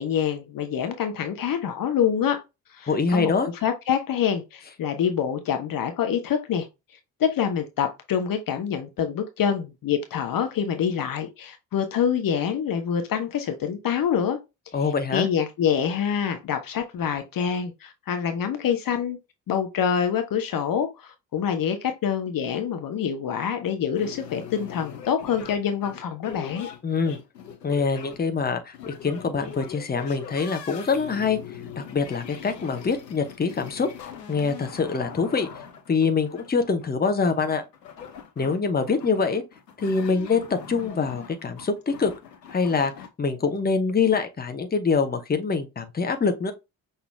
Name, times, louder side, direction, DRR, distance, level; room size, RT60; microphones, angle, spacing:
voice 1, 0.0-2.4 2.7-3.3 3.6-6.7 7.2-14.4 14.8-19.2 19.5-26.7, left 8 dB, 45° left, 0.9 m, -26 dB
voice 2, 2.9-3.5 14.7-15.3 26.8-27.2 27.6-31.4 31.8-33.9 34.3-35.5 35.9-37.6 38.4-39.4 39.8-42.1 42.5-42.9 43.2-46.5, left 5 dB, 20° left, 1.0 m, -24 dB
sound 1, 24.0-43.1, left 8 dB, 85° left, 0.7 m, -42 dB
6.0 x 2.7 x 3.3 m
figure-of-eight pair, 40°, 48 cm